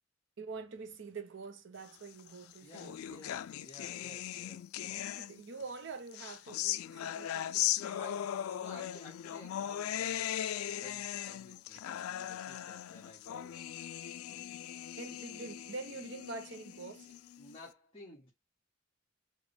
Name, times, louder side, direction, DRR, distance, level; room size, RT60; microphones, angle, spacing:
voice 1, 0.4-3.2 5.2-8.2 15.0-17.2, right 4 dB, 60° right, 0.7 m, -46 dB
sound 1, 2.2-5.6 6.1-17.6, left 11 dB, 90° left, 0.3 m, -38 dB
voice 2, 2.6-5.1 8.0-13.7 17.4-18.3, left 2 dB, 25° left, 1.3 m, -54 dB
4.9 x 2.2 x 3.3 m
head